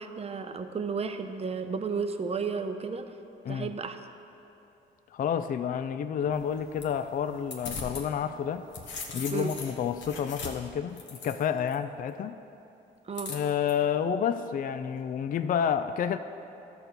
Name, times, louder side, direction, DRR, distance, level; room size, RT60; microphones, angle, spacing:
voice 1, 0.0-3.1 3.5-4.0 9.3-9.5 13.1-13.3, right 5 dB, 30° right, 7 dB, 0.7 m, -33 dB
voice 2, 5.1-8.6 9.1-12.4 13.3-16.2, left 8 dB, 45° left, 10 dB, 0.4 m, -29 dB
sound 1, 6.3-8.1 8.4-11.8 13.2-13.7, left 4 dB, 70° left, 1.3 m, -40 dB
13.0 x 4.4 x 6.7 m, 2.8 s
cardioid pair, 90°, 20 cm